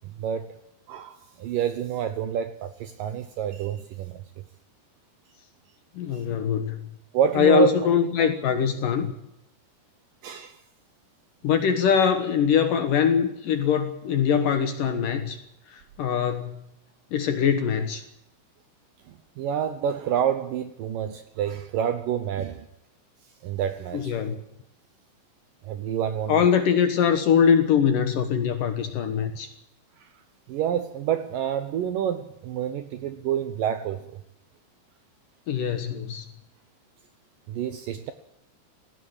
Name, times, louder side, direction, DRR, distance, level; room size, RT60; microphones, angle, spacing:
voice 1, 0.2-0.5 0.9-4.2 7.1-7.8 10.2-10.6 19.4-22.7 23.4-24.1 25.6-26.4 30.0-30.1 30.5-34.0 37.5-38.1, right 9 dB, 80° right, 1.9 m, -28 dB
voice 2, 6.0-6.9 7.4-9.1 11.4-15.4 15.7-16.6 17.1-18.0 23.9-24.4 26.3-29.5 35.5-36.2, left 7 dB, 65° left, 2.4 m, -22 dB
18.5 x 16.5 x 8.8 m
omnidirectional pair, 5.2 m